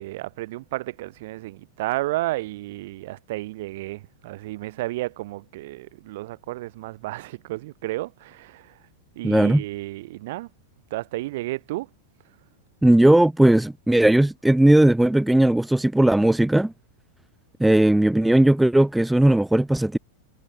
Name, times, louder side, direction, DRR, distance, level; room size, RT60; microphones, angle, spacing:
voice 1, 0.0-8.7 9.1-10.5 10.9-11.9, right 18 dB, 50° right, 2.9 m, -32 dB
voice 2, 9.2-9.6 12.8-16.7 17.6-20.0, right 1 dB, 5° right, 0.4 m, -17 dB
figure-of-eight pair, 90°, 0 cm